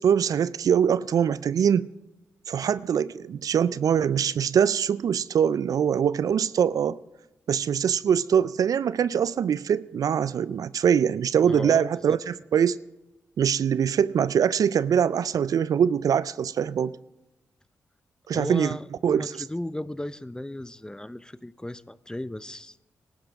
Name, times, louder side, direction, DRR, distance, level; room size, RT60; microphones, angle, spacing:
voice 1, 0.0-1.9 2.5-7.0 7.5-12.8 13.4-17.0 18.3-18.8 19.0-19.3, right 8 dB, 65° right, 0.4 m, -23 dB
voice 2, 11.5-12.2 18.3-22.8, left 1 dB, 10° left, 0.6 m, -36 dB
19.0 x 12.0 x 3.6 m
supercardioid pair, 45°, 7 cm